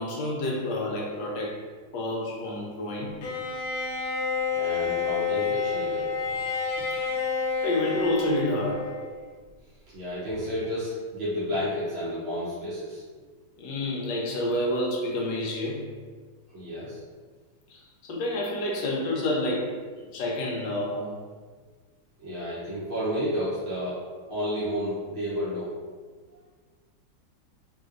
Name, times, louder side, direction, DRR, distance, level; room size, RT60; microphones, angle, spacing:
voice 1, 0.0-1.6 1.9-3.2 7.6-8.9 13.6-15.8 17.7-21.2, left 1 dB, 70° left, -2 dB, 1.2 m, -29 dB
Bowed string instrument, 3.2-9.3, left 5 dB, 90° left, 0.8 m, -29 dB
voice 2, 4.5-6.1 9.9-13.0 16.5-17.0 22.2-24.0 24.3-25.8, equal, 50° right, -10 dB, 0.7 m, -31 dB
3.4 x 2.9 x 2.5 m, 1.5 s
omnidirectional pair, 2.2 m